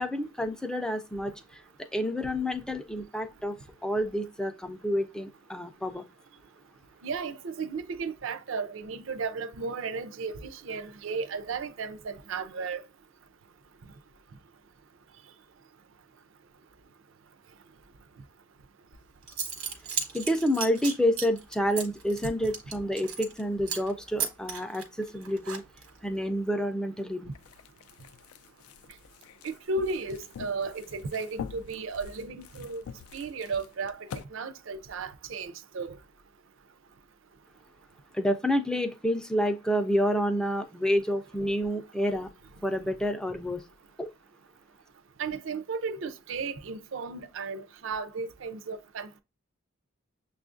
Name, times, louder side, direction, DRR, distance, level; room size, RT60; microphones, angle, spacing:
voice 1, 0.0-1.6 1.9-6.0 20.1-25.6 26.0-27.3 38.1-42.3 42.6-43.6 44.0-44.1, equal, 5° left, 0.3 m, -29 dB
voice 2, 7.0-12.8 29.4-32.8 33.1-34.0 34.3-36.0 45.2-49.2, right 4 dB, 65° right, 0.5 m, -34 dB
Zipper (clothing) / Coin (dropping), 18.9-19.0 19.3-23.4 23.7-23.9 24.2-26.0, right 6 dB, 85° right, 1.0 m, -35 dB
sound 1, 27.3-34.2, left 7 dB, 85° left, 0.3 m, -45 dB
6.7 x 2.4 x 2.4 m
head